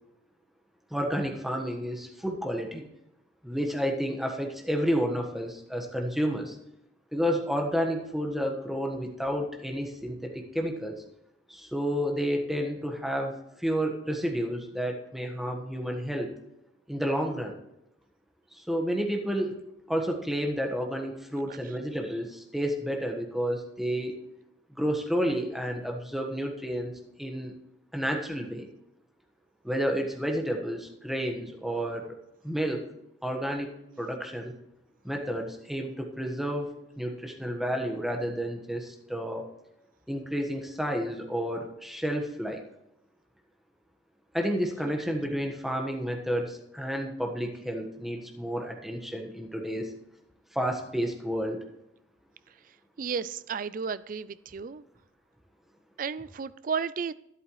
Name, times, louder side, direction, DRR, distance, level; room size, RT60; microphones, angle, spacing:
voice 1, 0.9-2.9 3.4-6.6 7.1-10.9 11.5-16.3 16.9-17.6 18.5-19.6 19.9-24.1 24.8-26.9 27.2-27.5 27.9-28.7 29.6-32.0 32.4-32.8 33.2-33.7 34.0-34.5 35.0-36.7 37.0-39.4 40.1-42.6 44.3-49.9 50.5-51.6, equal, ahead, 1 dB, 1.3 m, -30 dB
voice 2, 53.0-54.8 56.0-57.1, right 6 dB, 45° right, 17 dB, 0.4 m, -33 dB
12.0 x 10.5 x 3.1 m, 0.86 s
head